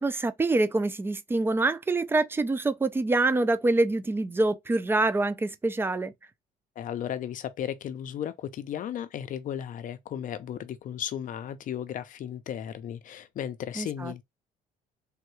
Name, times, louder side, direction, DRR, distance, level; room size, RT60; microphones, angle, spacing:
voice 1, 0.0-6.1 13.8-14.2, right 2 dB, 15° right, 0.4 m, -26 dB
voice 2, 6.8-14.2, left 10 dB, 50° left, 0.5 m, -35 dB
3.5 x 2.2 x 3.0 m
cardioid pair, 110°, 17 cm